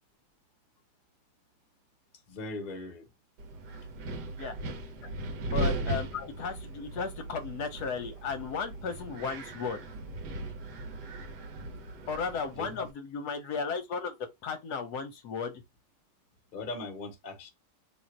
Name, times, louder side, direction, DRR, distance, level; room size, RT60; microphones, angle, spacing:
voice 1, 2.3-3.1 6.1-6.3 12.6-12.9 16.5-17.5, left 3 dB, 40° left, 0.8 m, -39 dB
Wind, 3.4-12.9, right 2 dB, 70° right, 1.2 m, -38 dB
voice 2, 4.2-4.6 5.4-6.1 6.4-9.8 12.1-15.6, left 5 dB, 65° left, 1.2 m, -35 dB
3.0 x 2.5 x 4.3 m
omnidirectional pair, 2.0 m